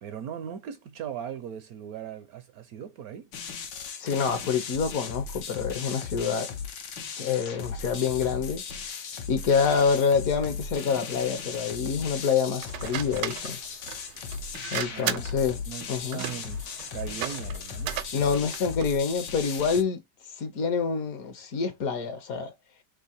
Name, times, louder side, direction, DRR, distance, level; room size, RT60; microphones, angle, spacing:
voice 1, 0.0-3.3 14.9-15.2 15.7-15.9 16.1-16.6 16.9-18.0, right 9 dB, 70° right, 0.9 m, -38 dB
sound 1, 3.3-19.8, left 5 dB, 85° left, 1.5 m, -37 dB
voice 2, 4.0-6.5 7.2-8.6 9.3-13.6 14.7-15.6 15.9-16.2 18.1-20.0 20.4-22.5, left 6 dB, 60° left, 1.2 m, -27 dB
sound 2, 12.6-19.0, right 11 dB, 85° right, 1.2 m, -36 dB
3.7 x 2.9 x 4.2 m
omnidirectional pair, 1.9 m